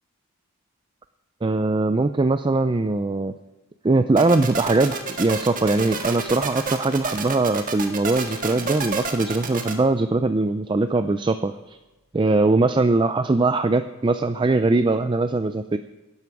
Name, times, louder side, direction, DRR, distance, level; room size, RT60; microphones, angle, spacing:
voice 1, 1.4-3.3 3.8-11.8 12.1-15.8, right 2 dB, 20° right, 10 dB, 0.4 m, -21 dB
sound 1, 4.2-9.7, right 4 dB, 40° right, 1.6 m, -30 dB
19.0 x 11.0 x 4.8 m, 1.1 s
head